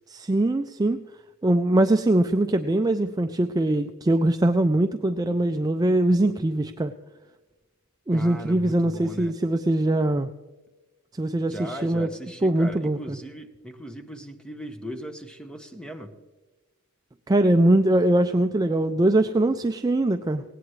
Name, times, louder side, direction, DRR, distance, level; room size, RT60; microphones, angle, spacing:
voice 1, 0.1-1.0 1.4-6.9 8.1-10.3 11.1-12.1 12.4-13.2 17.3-20.4, right 1 dB, 15° right, 7 dB, 0.3 m, -22 dB
voice 2, 8.1-9.4 11.5-16.1, right 1 dB, 5° left, 7 dB, 0.9 m, -38 dB
18.5 x 17.5 x 3.2 m, 1.2 s
head